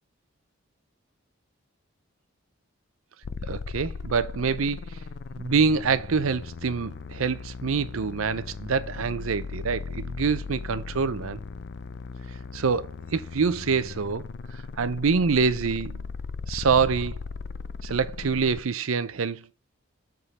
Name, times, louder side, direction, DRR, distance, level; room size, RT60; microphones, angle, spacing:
sound 1, 3.2-18.6, left 4 dB, 55° left, 0.4 m, -38 dB
voice 1, 3.4-5.0 5.4-11.4 12.5-14.2 14.8-16.0 16.5-17.2 17.8-19.5, right 5 dB, 85° right, 0.6 m, -26 dB
8.2 x 3.7 x 4.1 m
head